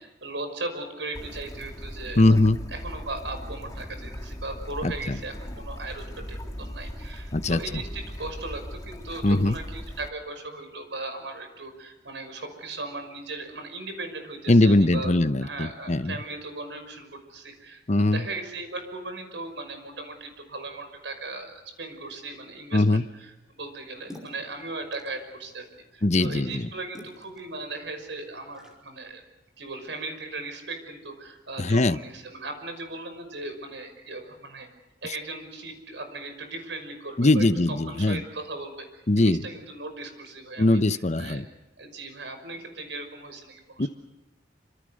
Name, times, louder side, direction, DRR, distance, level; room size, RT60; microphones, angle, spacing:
voice 1, 0.0-15.1 15.4-25.7 25.9-29.2 29.6-34.7 35.0-41.4 41.8-43.9, right 2 dB, 85° right, 7 dB, 5.8 m, -38 dB
Bird / Stream, 1.1-10.1, equal, 20° left, 1.7 m, -38 dB
voice 2, 2.2-2.6 4.8-5.2 7.3-7.6 9.2-9.6 14.5-16.1 17.9-18.2 22.7-23.0 26.0-26.6 31.6-32.0 37.2-38.2 39.1-39.4 40.6-41.4 43.8-43.9, left 2 dB, 40° left, 11 dB, 0.9 m, -21 dB
sound 1, 23.6-28.7, left 1 dB, 5° right, 5.1 m, -51 dB
27.0 x 26.0 x 6.5 m, 1.0 s
head